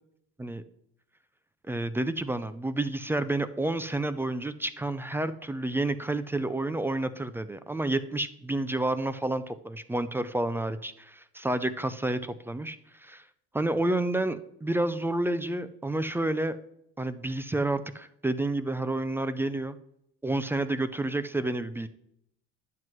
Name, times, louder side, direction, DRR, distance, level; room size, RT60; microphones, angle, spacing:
voice 1, 1.7-13.3 13.5-16.6 17.0-19.8 20.2-21.9, right 2 dB, 10° right, 12 dB, 0.3 m, -30 dB
10.5 x 7.6 x 3.1 m, 0.77 s
supercardioid pair, 110°, 30 cm